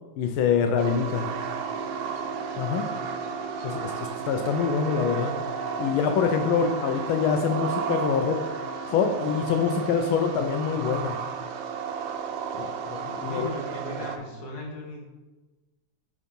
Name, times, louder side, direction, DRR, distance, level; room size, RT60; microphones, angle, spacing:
voice 1, 0.2-1.3 2.6-2.9 3.6-5.3 5.8-8.4 8.8-11.2 12.5-13.5, left 6 dB, 85° left, 5 dB, 1.4 m, -25 dB
sound 1, 0.8-14.2, right 6 dB, 75° right, 1.4 m, -33 dB
voice 2, 13.2-15.1, left 1 dB, 50° left, -1 dB, 1.8 m, -38 dB
8.1 x 3.7 x 5.3 m, 1.2 s
omnidirectional pair, 2.2 m